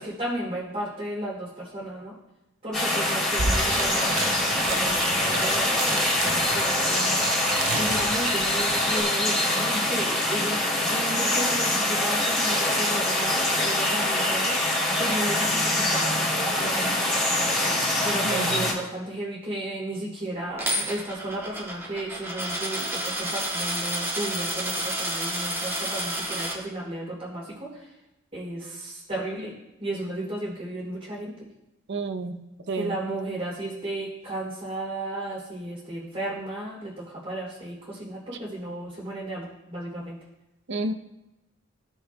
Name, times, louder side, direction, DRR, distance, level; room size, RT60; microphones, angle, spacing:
voice 1, 0.0-2.1 2.6-17.0 18.0-27.9 28.3-29.5 29.8-31.4 32.7-40.2, right 1 dB, 35° right, -9 dB, 3.0 m, -34 dB
sound 1, 2.7-18.7, left 1 dB, 5° left, 3.0 m, -24 dB
sound 2, 3.0-3.1 3.3-9.0, right 3 dB, 85° right, 0.9 m, -32 dB
voice 2, 18.2-18.6 31.9-32.4 32.7-33.0 40.7-40.9, right 3 dB, 60° right, 6 dB, 0.7 m, -30 dB
Coin (dropping), 20.6-26.5, right 1 dB, 10° right, 1.8 m, -30 dB
16.5 x 6.2 x 2.2 m, 0.96 s
head